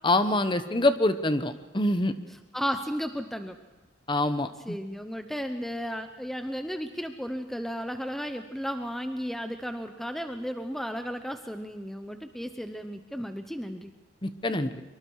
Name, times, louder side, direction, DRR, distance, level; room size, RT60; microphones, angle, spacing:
voice 1, 0.0-2.1 4.1-4.8 14.2-14.8, left 1 dB, 25° left, 10 dB, 1.0 m, -25 dB
voice 2, 2.5-3.6 4.6-13.9, equal, ahead, 7 dB, 0.8 m, -34 dB
24.5 x 23.5 x 4.8 m, 1.1 s
head